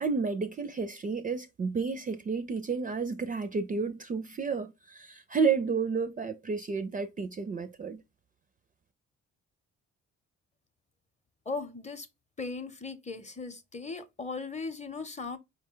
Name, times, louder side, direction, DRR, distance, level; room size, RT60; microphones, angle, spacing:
voice 1, 0.0-8.0, right 5 dB, 25° right, 0.4 m, -31 dB
voice 2, 11.5-12.1 12.4-15.4, left 4 dB, 25° left, 0.7 m, -38 dB
4.5 x 2.2 x 3.6 m
cardioid pair, 90°, 30 cm